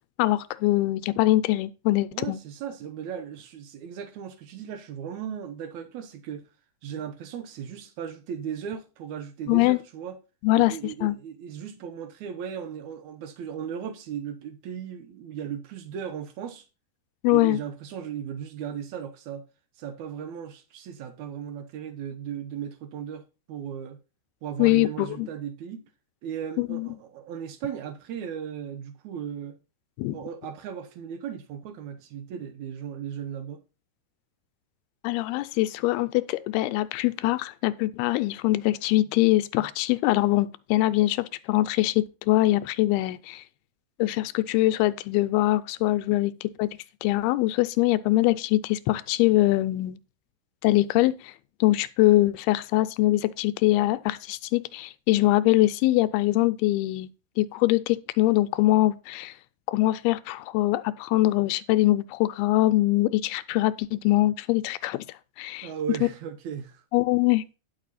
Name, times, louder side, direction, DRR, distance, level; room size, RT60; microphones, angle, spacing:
voice 1, 0.2-2.4 9.5-9.8 10.4-10.8 11.0-11.2 17.2-17.6 24.6-25.3 26.6-26.9 30.0-30.2 35.0-43.4 44.0-46.7 47.0-50.0 50.6-51.3 51.6-57.1 57.4-59.3 59.7-65.1 65.4-65.7 66.9-67.6, left 17 dB, 80° left, 2.4 m, -23 dB
voice 2, 2.1-6.5 6.8-10.2 10.5-16.6 17.3-19.5 19.8-23.2 23.5-24.0 24.4-25.9 26.2-29.6 30.1-33.6 65.6-66.8, right 8 dB, 80° right, 1.6 m, -36 dB
10.5 x 6.7 x 4.1 m
omnidirectional pair, 4.7 m